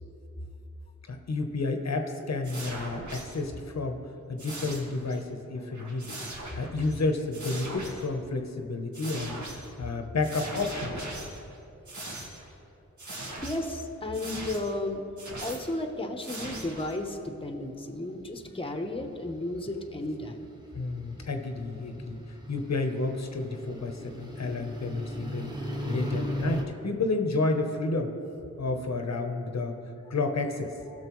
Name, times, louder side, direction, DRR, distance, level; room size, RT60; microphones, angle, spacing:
voice 1, 1.1-4.0 4.3-6.2 6.5-11.1 20.7-25.5 25.8-28.1 28.6-29.8 30.1-30.7, left 3 dB, 65° left, 5 dB, 0.9 m, -31 dB
sound 1, 2.4-3.4 4.4-5.2 5.6-7.0 7.3-8.1 8.9-9.7 10.2-11.5 11.9-12.5 13.0-13.7 14.1-14.8 15.2-15.8 16.2-17.0, right 1 dB, 75° right, 1.7 m, -40 dB
voice 2, 13.4-15.0 15.4-20.5, left 1 dB, 20° left, 5 dB, 0.9 m, -33 dB
sound 2, 17.2-17.6 18.2-26.6, equal, 15° right, 1.4 m, -37 dB
17.0 x 6.5 x 3.1 m, 2.8 s
wide cardioid pair, 70°, 29 cm